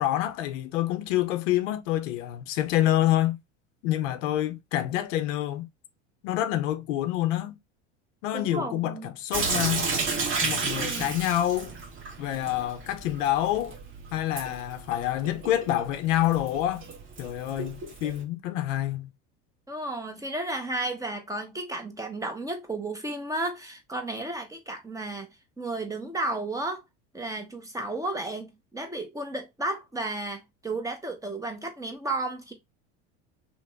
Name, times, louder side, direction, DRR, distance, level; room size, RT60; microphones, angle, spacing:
voice 1, 0.0-3.4 3.8-5.7 6.2-7.6 8.2-9.9 10.4-11.7 12.2-13.8 14.1-16.8 17.2-19.1, left 13 dB, 85° left, 0.6 m, -27 dB
voice 2, 8.3-9.1 10.8-11.1 19.7-26.8 27.1-32.5, right 2 dB, 10° right, 0.6 m, -33 dB
Sink (filling or washing) / Drip, 9.3-18.2, right 4 dB, 35° right, 1.0 m, -33 dB
2.8 x 2.0 x 3.3 m
supercardioid pair, 100°, 37 cm